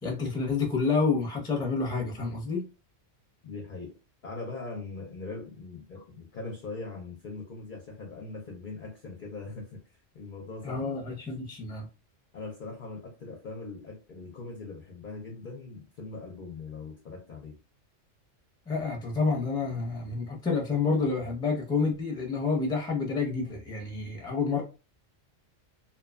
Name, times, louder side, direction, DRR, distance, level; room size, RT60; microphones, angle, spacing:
voice 1, 0.0-2.7 10.6-11.9 18.7-24.6, left 4 dB, 5° left, 0.5 m, -29 dB
voice 2, 3.4-3.9 4.2-10.8 12.3-17.6, left 3 dB, 55° left, 0.6 m, -41 dB
2.6 x 2.2 x 2.3 m
omnidirectional pair, 1.3 m